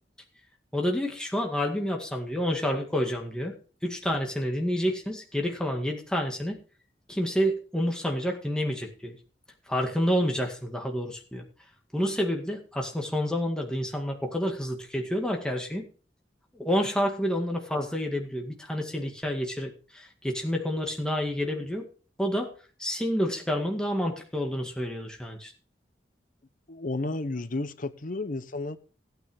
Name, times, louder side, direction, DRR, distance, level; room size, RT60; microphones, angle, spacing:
voice 1, 0.7-3.5 3.8-6.6 7.1-9.2 9.7-11.4 11.9-15.9 16.5-21.9 22.2-22.5 22.8-25.5, equal, 5° left, 2.0 m, -29 dB
voice 2, 26.7-28.8, left 2 dB, 50° left, 0.9 m, -32 dB
16.0 x 9.2 x 3.6 m
head